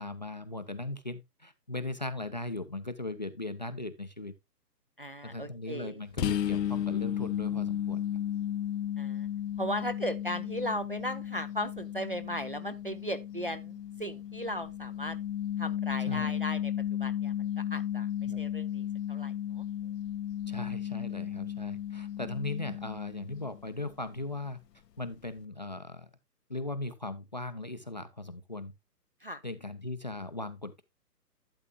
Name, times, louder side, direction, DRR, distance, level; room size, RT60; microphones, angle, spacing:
voice 1, 0.0-4.3 5.2-8.0 16.1-16.4 18.3-18.4 20.5-24.6 25.0-26.1 26.5-28.7 29.4-30.8, left 2 dB, 30° left, 0.4 m, -38 dB
voice 2, 5.0-6.0 9.0-9.3 9.6-15.2 15.6-16.7 17.0-18.1 18.4-19.7 29.2-29.4, equal, 35° right, 0.4 m, -37 dB
sound 1, 6.2-23.7, left 10 dB, 80° left, 0.7 m, -34 dB
12.5 x 8.0 x 2.2 m
hypercardioid pair, 145°, 49 cm